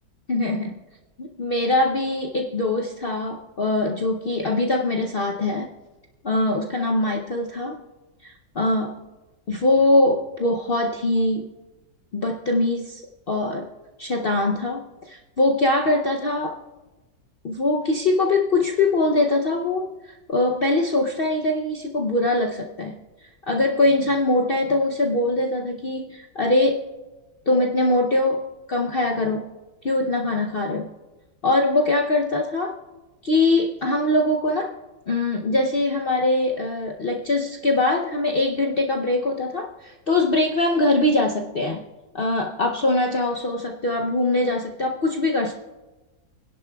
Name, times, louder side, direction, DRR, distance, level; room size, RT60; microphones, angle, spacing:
voice 1, 0.3-0.7 1.2-5.7 6.2-7.8 8.2-9.1 9.5-11.6 12.1-13.0 13.3-13.7 14.0-16.6 17.4-22.9 23.2-26.8 27.5-29.6 29.8-30.9 31.4-32.8 33.2-34.7 35.1-41.8 42.1-45.5, left 2 dB, 75° left, 1 dB, 0.5 m, -22 dB
24.5 x 10.5 x 2.3 m, 1.2 s
omnidirectional pair, 2.0 m